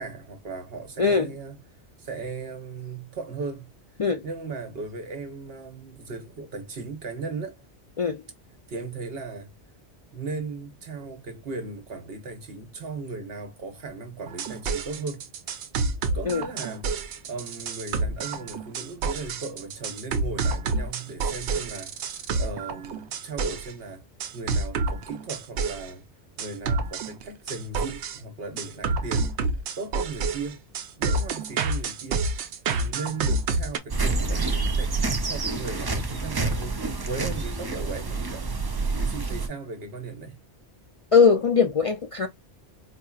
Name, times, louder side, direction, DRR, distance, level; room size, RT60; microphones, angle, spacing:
voice 1, 0.0-1.6 2.0-3.7 4.2-7.6 8.7-9.5 10.1-15.3 16.1-16.9 17.2-22.0 22.3-24.0 24.3-26.0 26.4-29.3 29.8-30.6 31.0-32.3 32.6-36.8 37.0-38.5 39.0-40.4, right 3 dB, 60° right, 1.2 m, -37 dB
voice 2, 1.0-1.3 4.0-4.2 8.0-8.2 16.3-16.4 41.1-42.3, left 5 dB, 60° left, 0.3 m, -20 dB
sound 1, 14.3-23.7 24.2-25.9 26.4-28.2 28.6-33.8, right 3 dB, 80° right, 0.9 m, -28 dB
sound 2, 33.9-39.5, right 3 dB, 35° right, 0.3 m, -27 dB
4.5 x 2.7 x 2.3 m
omnidirectional pair, 1.1 m